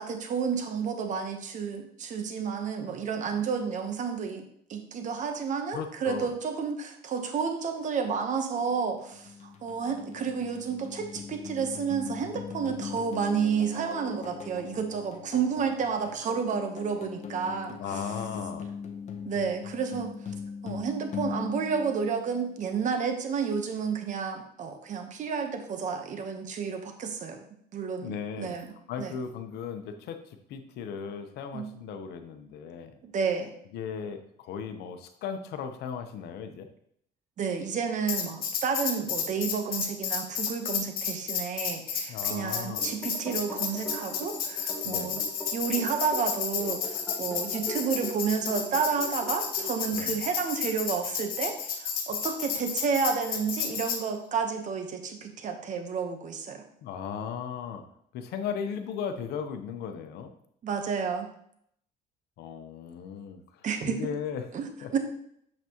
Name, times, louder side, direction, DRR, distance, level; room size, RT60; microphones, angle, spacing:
voice 1, 0.0-17.8 19.2-20.2 20.6-27.4 27.7-29.1 31.5-31.7 33.0-33.5 37.4-45.2 45.5-56.6 60.6-61.3 63.6-64.0 64.5-65.0, right 6 dB, 45° right, 6 dB, 1.0 m, -31 dB
voice 2, 5.7-6.3 17.8-18.7 28.0-28.6 28.9-33.0 33.7-36.7 42.1-42.9 44.8-45.3 49.9-50.2 56.8-57.8 58.1-60.3 62.4-64.5 64.8-64.9, left 7 dB, 75° left, 7 dB, 0.9 m, -37 dB
sound 1, 8.6-22.8, left 6 dB, 45° left, 1.0 m, -40 dB
Tambourine, 38.1-54.0, left 6 dB, 60° left, 1.3 m, -32 dB
sound 2, 42.6-50.2, equal, 10° left, 1.3 m, -42 dB
7.5 x 6.0 x 3.0 m, 0.70 s
cardioid pair, 110°, 17 cm